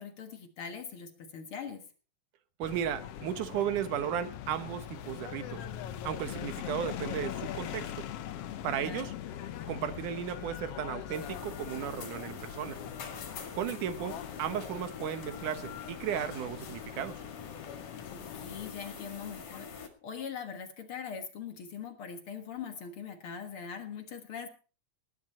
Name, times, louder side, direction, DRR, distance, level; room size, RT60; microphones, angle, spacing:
voice 1, 0.0-1.8 8.8-9.1 18.1-24.5, left 7 dB, 50° left, 6 dB, 2.1 m, -42 dB
sound 1, 2.6-18.7, left 11 dB, 65° left, 1.6 m, -42 dB
voice 2, 2.6-5.7 6.0-8.1 8.6-9.1 9.7-12.8 13.5-17.2, right 9 dB, 85° right, 11 dB, 2.7 m, -35 dB
sound 2, 9.3-17.9, equal, 10° left, 7.8 m, -58 dB
sound 3, 11.1-19.9, left 6 dB, 90° left, 3.6 m, -45 dB
19.0 x 10.5 x 4.3 m, 0.36 s
omnidirectional pair, 3.5 m